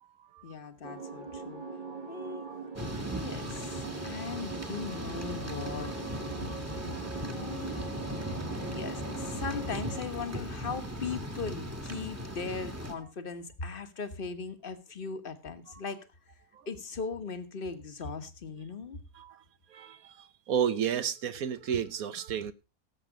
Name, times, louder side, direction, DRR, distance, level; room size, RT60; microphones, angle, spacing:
voice 1, 0.4-1.6 2.1-2.5 3.1-5.9 7.2-7.8 8.7-16.0 16.7-19.0, left 4 dB, 40° left, 1.4 m, -38 dB
sound 1, 0.8-10.0, right 4 dB, 35° right, 1.6 m, -42 dB
voice 2, 2.1-3.5 6.9-7.1 7.7-7.9 16.5-16.6 19.1-19.4 19.7-22.5, right 8 dB, 75° right, 1.3 m, -34 dB
Thunder / Rain, 2.8-12.9, equal, 10° right, 1.4 m, -38 dB
17.0 x 7.6 x 4.9 m
omnidirectional pair, 1.5 m